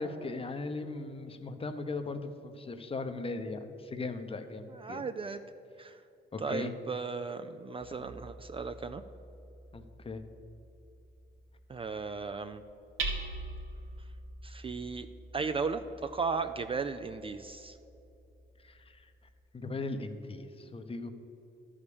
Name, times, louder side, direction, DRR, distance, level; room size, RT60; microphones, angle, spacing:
voice 1, 0.0-5.1 6.3-6.7 9.7-10.2 18.6-19.1 19.5-21.1, left 3 dB, 30° left, 8 dB, 0.8 m, -38 dB
voice 2, 4.7-5.4 5.8-6.0 6.4-9.0 11.7-12.6 14.4-15.1 15.3-17.8, right 4 dB, 25° right, 10 dB, 0.4 m, -36 dB
Hammer, 7.8-19.5, right 2 dB, 90° right, 1.9 m, -45 dB
12.0 x 5.0 x 7.0 m, 2.8 s
cardioid pair, 90°, 20 cm